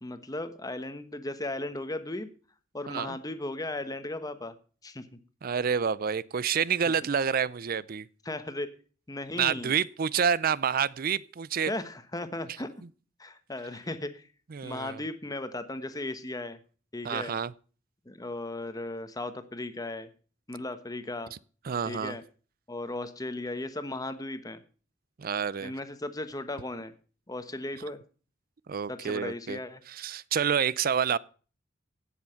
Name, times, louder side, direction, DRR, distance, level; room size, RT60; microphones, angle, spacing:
voice 1, 0.0-2.3 2.7-4.5 4.8-5.2 8.2-8.7 9.1-9.7 11.7-12.7 13.2-14.3 14.6-16.6 16.9-17.3 18.0-20.1 20.5-21.3 21.8-22.2 22.7-24.6 25.6-26.9 27.3-28.0 28.9-29.8, left 2 dB, 20° left, 1.1 m, -36 dB
voice 2, 2.9-3.2 5.4-8.1 9.4-11.7 14.5-15.0 17.0-17.5 21.7-22.2 25.2-25.7 28.7-29.6 29.9-31.2, right 7 dB, 50° right, 0.5 m, -28 dB
16.0 x 7.2 x 5.7 m
head